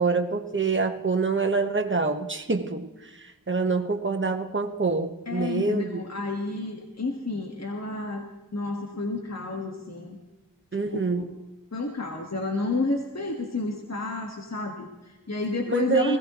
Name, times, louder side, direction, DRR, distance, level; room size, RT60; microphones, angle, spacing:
voice 1, 0.0-2.9 3.5-6.0 10.7-11.2 15.7-16.2, right 4 dB, 35° right, 5 dB, 1.4 m, -26 dB
voice 2, 5.3-8.3 8.5-10.2 10.7-11.2 11.7-16.2, left 2 dB, 50° left, 1 dB, 1.7 m, -30 dB
20.5 x 17.0 x 3.1 m, 1.1 s
wide cardioid pair, 55°, 34 cm